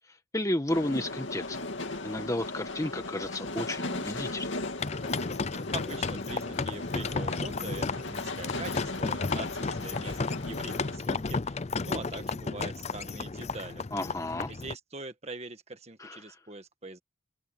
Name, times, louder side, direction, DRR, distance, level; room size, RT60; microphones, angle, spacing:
voice 1, 0.3-1.6 2.0-4.6 13.9-14.5 16.0-16.3, left 1 dB, 15° left, 1.4 m, -32 dB
sound 1, 0.7-11.0, left 2 dB, 60° left, 2.6 m, -37 dB
sound 2, 4.8-14.8, left 4 dB, 30° left, 0.5 m, -33 dB
voice 2, 5.7-13.9 14.5-17.0, right 3 dB, 30° right, 1.7 m, -43 dB
open air
head